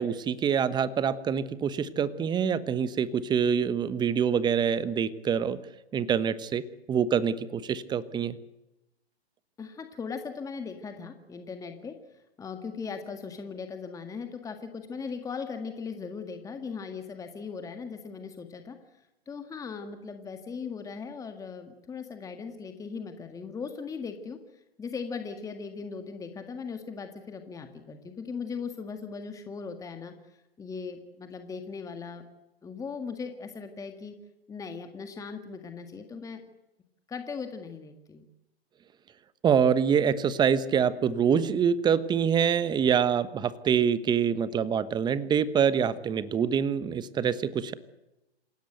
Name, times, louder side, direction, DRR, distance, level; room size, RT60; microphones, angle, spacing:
voice 1, 0.0-5.6 5.9-6.6 6.9-8.4 39.4-47.7, right 7 dB, 15° right, 16 dB, 1.1 m, -25 dB
voice 2, 9.6-32.2 32.6-34.1 34.5-36.4 37.1-38.2, left 5 dB, 10° left, 7 dB, 1.8 m, -39 dB
27.5 x 16.5 x 8.1 m, 0.95 s
figure-of-eight pair, 120°, 32 cm